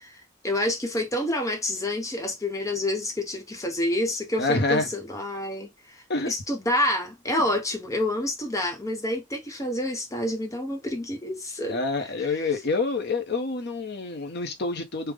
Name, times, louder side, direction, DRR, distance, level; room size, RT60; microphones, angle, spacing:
voice 1, 0.1-11.8 12.2-12.3, left 1 dB, 15° left, 0.8 m, -28 dB
voice 2, 4.4-4.9 6.1-6.3 11.7-15.1, left 3 dB, 55° left, 0.8 m, -27 dB
3.4 x 2.1 x 3.4 m
head